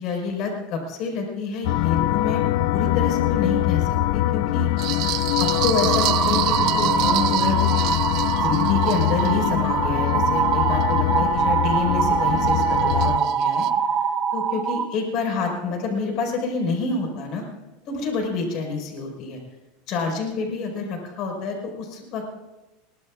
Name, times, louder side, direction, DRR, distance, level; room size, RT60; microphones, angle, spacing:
voice 1, 0.0-2.4 2.7-8.1 8.4-13.7 14.3-17.4 17.9-19.4 19.9-22.4, left 4 dB, 50° left, 2 dB, 4.8 m, -28 dB
sound 1, 1.6-13.2, left 17 dB, 65° left, 0.4 m, -23 dB
sound 2, 4.8-11.5 11.9-13.7, right 17 dB, 50° right, 0.4 m, -31 dB
sound 3, 5.5-14.9, right 7 dB, 35° right, 0.9 m, -23 dB
22.0 x 19.0 x 2.5 m, 1.1 s
supercardioid pair, 135°, 0 cm